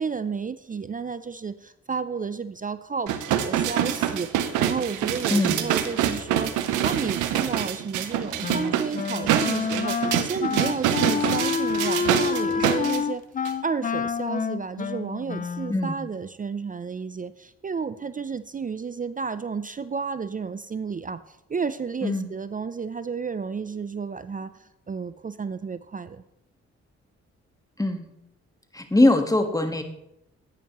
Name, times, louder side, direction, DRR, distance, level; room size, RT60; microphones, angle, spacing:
voice 1, 0.0-3.2 3.4-6.5 6.8-13.2 13.6-26.2, right 5 dB, 30° right, 14 dB, 0.5 m, -32 dB
sound 1, 3.1-13.0 13.4-13.5, right 10 dB, 85° right, 0.7 m, -26 dB
voice 2, 5.3-5.6 15.7-16.0 22.0-22.3 27.8-28.1 28.7-29.8, left 2 dB, 10° left, 6 dB, 1.5 m, -21 dB
Wind instrument woodwind instrument, 8.4-15.9, left 6 dB, 30° left, 0.4 m, -28 dB
10.5 x 8.9 x 3.0 m, 0.83 s
supercardioid pair, 45°, 30 cm